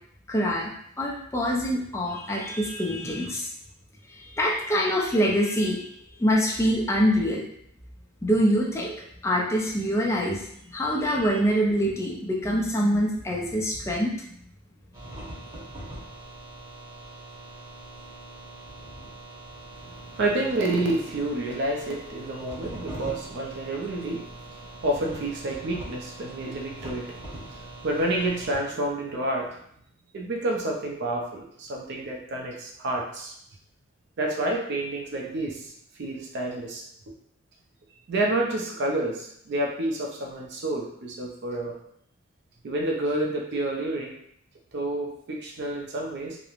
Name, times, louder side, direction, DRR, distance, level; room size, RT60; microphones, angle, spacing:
voice 1, 0.3-0.7 1.0-3.5 4.1-7.5 8.2-8.9 9.2-14.1, equal, 15° left, -2 dB, 0.4 m, -25 dB
sound 1, 14.9-28.6, right 1 dB, 15° right, 0.9 m, -42 dB
voice 2, 19.8-29.6 30.1-33.3 34.2-36.8 38.1-41.8 42.6-44.1 44.7-46.4, right 1 dB, 55° right, 0 dB, 0.4 m, -29 dB
2.9 x 2.0 x 2.4 m, 0.69 s
head